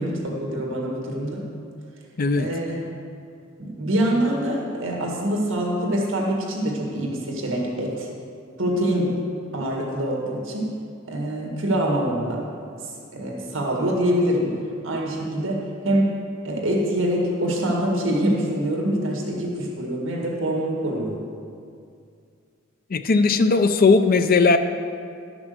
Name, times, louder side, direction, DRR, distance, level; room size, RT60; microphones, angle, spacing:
voice 1, 0.0-1.5 2.4-2.9 3.6-8.1 8.6-9.2 9.5-10.8 11.1-12.5 13.1-14.6 14.8-16.2 16.4-21.3, right 1 dB, 70° right, -1 dB, 1.8 m, -25 dB
voice 2, 22.9-24.6, left 4 dB, 45° left, 8 dB, 0.5 m, -17 dB
11.5 x 6.0 x 6.6 m, 2.4 s
head